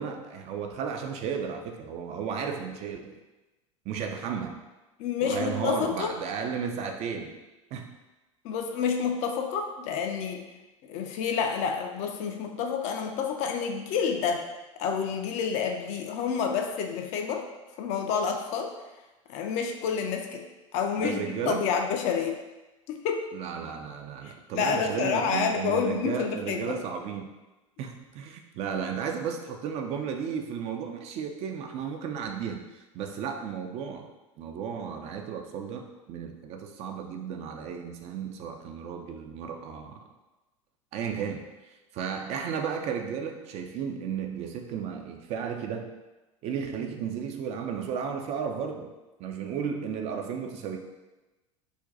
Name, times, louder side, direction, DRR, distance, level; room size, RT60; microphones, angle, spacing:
voice 1, 0.0-3.2 3.9-4.6 5.2-7.4 7.7-7.9 21.0-21.7 23.3-27.3 27.8-34.1 34.4-40.0 40.9-41.4 41.9-45.9 46.4-48.9 49.2-50.8, right 7 dB, 40° right, 4 dB, 0.4 m, -34 dB
voice 2, 5.0-6.1 8.4-10.4 10.8-14.4 14.8-17.4 17.8-18.7 19.3-20.4 20.7-22.4 22.9-23.3 24.2-26.8, left 6 dB, 45° left, 4 dB, 0.4 m, -29 dB
2.5 x 2.2 x 3.8 m, 1.1 s
figure-of-eight pair, 80°, 17 cm